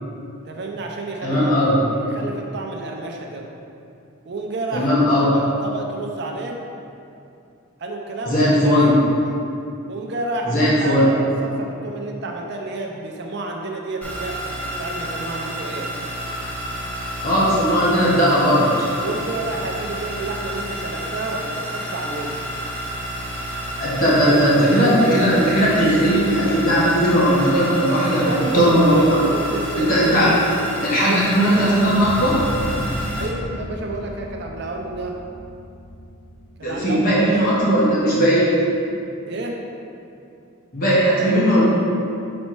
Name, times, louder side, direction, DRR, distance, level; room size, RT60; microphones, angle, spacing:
voice 1, 0.5-3.5 4.3-6.6 7.8-9.0 9.9-16.0 19.0-22.6 23.8-24.4 28.1-30.6 31.1-31.3 33.2-35.2 36.6-37.5 39.3-39.6, right 2 dB, 50° right, 1 dB, 0.5 m, -30 dB
voice 2, 1.2-1.8 4.7-5.3 8.3-8.9 10.5-11.1 17.2-18.7 23.8-29.2 29.9-30.3 30.8-32.4 36.6-38.4 40.7-41.6, equal, 40° left, -7 dB, 1.1 m, -17 dB
sound 1, 14.0-33.3, equal, 5° left, 1.1 m, -30 dB
sound 2, 31.9-37.4, left 1 dB, 75° left, 1.2 m, -33 dB
5.3 x 4.3 x 4.6 m, 2.6 s
head